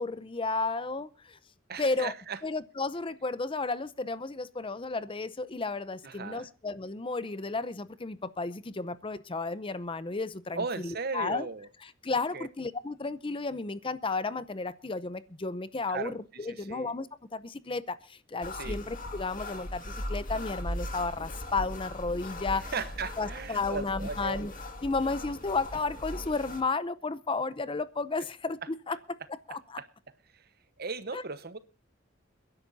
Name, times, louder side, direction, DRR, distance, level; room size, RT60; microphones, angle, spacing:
voice 1, 0.0-1.4 1.8-2.1 2.4-11.5 11.8-22.7 23.2-24.5 24.8-29.0 29.5-29.8 31.1-31.2, left 3 dB, 25° left, 0.6 m, -33 dB
voice 2, 1.7-2.4 6.0-6.5 10.5-11.7 12.3-12.5 15.9-16.2 16.5-16.9 18.5-18.8 22.7-24.4 29.8-29.9 30.3-30.5 30.8-31.6, right 4 dB, 50° right, 1.1 m, -37 dB
sound 1, 18.4-26.6, left 1 dB, 40° left, 2.2 m, -39 dB
29.5 x 10.5 x 2.7 m
head